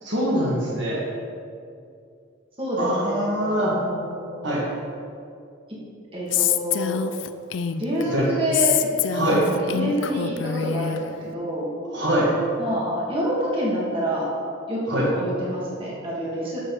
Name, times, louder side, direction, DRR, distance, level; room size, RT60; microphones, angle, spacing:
voice 1, 0.0-1.0 2.8-3.7 4.4-4.6 8.0-8.3 9.1-9.4 11.9-12.3 14.9-15.1, right 1 dB, 65° right, -6 dB, 2.2 m, -23 dB
voice 2, 2.6-3.3 3.6-4.5 5.7-5.8 6.1-7.0 7.8-8.7 9.3-11.7 12.6-14.3 14.7-16.6, equal, 30° right, -6 dB, 2.5 m, -27 dB
Female speech woman speaking, 6.3-8.0 8.5-11.0, left 9 dB, 75° left, 0.4 m, -25 dB
12.0 x 7.0 x 4.2 m, 2.4 s
head